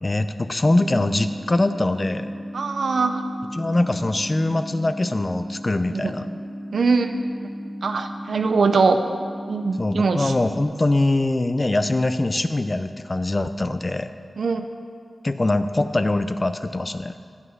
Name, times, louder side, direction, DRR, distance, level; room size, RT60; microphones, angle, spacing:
voice 1, 0.0-2.3 3.5-6.3 9.8-14.1 15.2-17.2, left 2 dB, 30° left, 10 dB, 0.5 m, -23 dB
sound 1, 0.6-10.6, equal, 10° right, 0.7 m, -35 dB
voice 2, 2.5-3.2 5.9-6.1 6.7-7.1 7.8-9.0 9.5-10.3 14.4-14.6, right 4 dB, 80° right, 7 dB, 0.6 m, -21 dB
9.8 x 5.6 x 7.7 m, 2.2 s
wide cardioid pair, 65°, 0 cm